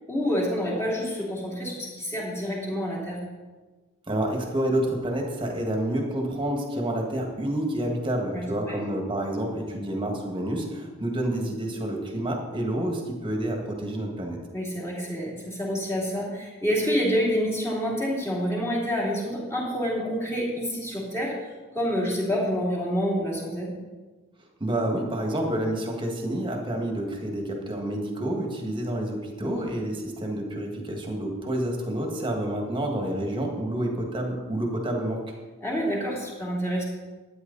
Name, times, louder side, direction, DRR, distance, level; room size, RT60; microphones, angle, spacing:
voice 1, 0.1-3.2 8.3-8.8 14.5-21.3 21.7-23.7 29.4-29.5 35.6-36.8, equal, 10° left, -4 dB, 2.9 m, -28 dB
voice 2, 4.1-14.4 24.6-35.2, right 1 dB, 25° right, 1 dB, 1.8 m, -29 dB
12.5 x 9.6 x 4.1 m, 1.3 s
head